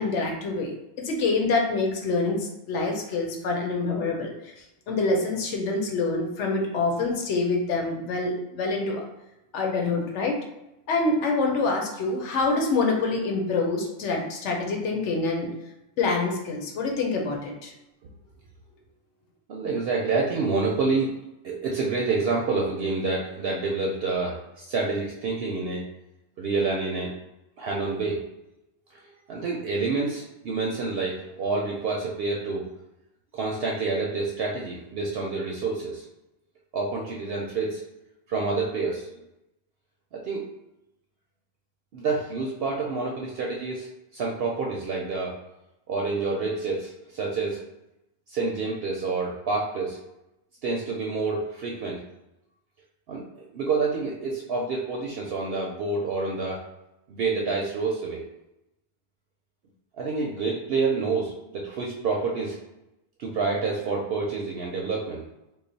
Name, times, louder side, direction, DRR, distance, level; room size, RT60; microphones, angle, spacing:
voice 1, 0.0-9.0 9.5-10.4 10.9-15.5 16.0-17.7, left 3 dB, 90° left, 1 dB, 1.0 m, -26 dB
voice 2, 19.5-21.1 21.4-25.8 26.4-27.1 27.6-28.2 28.9-32.6 33.3-36.1 36.7-37.8 38.3-39.1 40.1-40.5 41.9-43.9 44.1-45.4 45.9-47.6 48.3-50.0 50.6-52.0 53.1-56.6 57.1-58.2 60.0-62.6 63.2-65.2, right 4 dB, 65° right, -2 dB, 0.7 m, -28 dB
3.1 x 2.1 x 3.9 m, 0.90 s
omnidirectional pair, 1.2 m